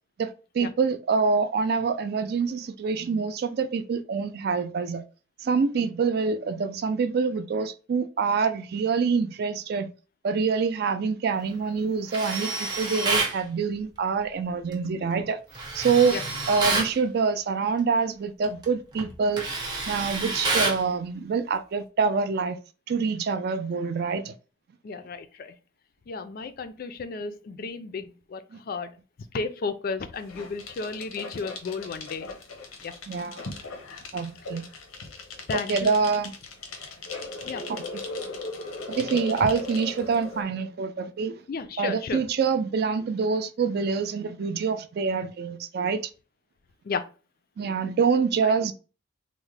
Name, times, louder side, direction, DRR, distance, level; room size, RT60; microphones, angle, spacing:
voice 1, 0.2-5.0 5.4-9.9 10.2-15.4 15.7-16.2 16.5-19.4 19.9-22.6 22.9-24.3 28.5-28.6 33.1-33.4 34.1-34.6 35.5-36.3 37.7-37.8 38.9-41.4 41.8-46.0 47.6-48.7, right 5 dB, 50° right, 0.3 m, -26 dB
Tools, 12.1-13.4 15.5-16.9 18.4-18.6 19.0-20.8, right 3 dB, 20° right, 0.7 m, -28 dB
voice 2, 24.8-25.5 26.1-28.9 29.3-32.3 32.8-32.9 35.5-35.9 37.4-37.6 41.5-42.2 46.8-47.0 48.4-48.5, left 4 dB, 45° left, 0.3 m, -33 dB
sound 1, 30.1-40.4, left 3 dB, 90° left, 0.7 m, -38 dB
3.5 x 2.1 x 3.2 m
head